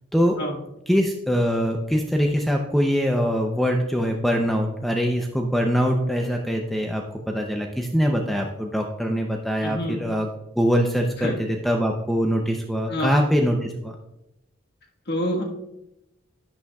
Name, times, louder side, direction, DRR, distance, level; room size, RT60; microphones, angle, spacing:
voice 1, 0.9-10.3 10.6-13.9, equal, ahead, 2 dB, 0.6 m, -23 dB
voice 2, 9.6-10.0 11.2-11.4 12.9-13.2 15.1-15.4, left 1 dB, 55° left, 1 dB, 1.5 m, -26 dB
11.0 x 8.9 x 2.3 m, 0.88 s
head